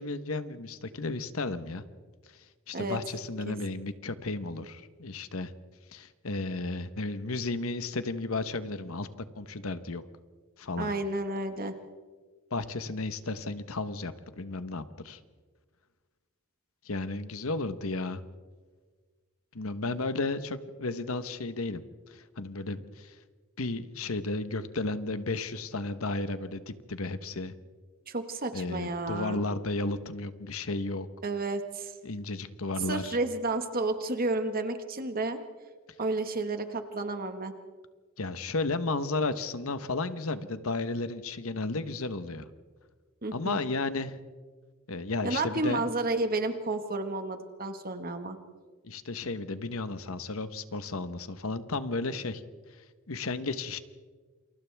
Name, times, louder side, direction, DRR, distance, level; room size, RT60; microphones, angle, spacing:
voice 1, 0.0-1.8 2.7-5.5 5.9-9.1 9.4-10.0 10.6-10.9 12.5-15.2 16.8-18.2 19.5-21.8 22.1-23.2 23.6-27.5 28.5-31.1 32.0-33.2 38.2-42.5 43.3-44.2 44.9-45.8 48.8-52.4 53.1-53.8, left 3 dB, 70° left, 11 dB, 1.1 m, -33 dB
voice 2, 10.8-11.7 28.1-29.4 31.2-31.9 32.9-35.4 36.0-37.5 43.2-43.6 45.2-48.4, right 2 dB, 45° right, 7 dB, 1.6 m, -31 dB
28.5 x 27.0 x 3.5 m, 1.5 s
head